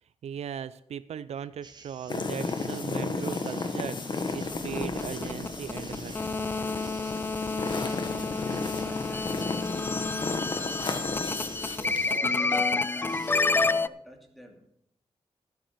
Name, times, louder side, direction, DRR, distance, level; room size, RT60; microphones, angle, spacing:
voice 1, 0.2-6.5, right 8 dB, 80° right, 15 dB, 0.5 m, -38 dB
sound 1, 1.6-13.5, right 4 dB, 40° right, 1.4 m, -51 dB
sound 2, 2.1-12.2, left 3 dB, 45° left, 1.3 m, -34 dB
sound 3, 4.3-13.9, left 3 dB, 20° left, 0.4 m, -29 dB
voice 2, 7.7-11.2 11.6-14.7, equal, ahead, 2 dB, 2.6 m, -49 dB
12.0 x 12.0 x 4.5 m, 0.71 s
wide cardioid pair, 100°, 11 cm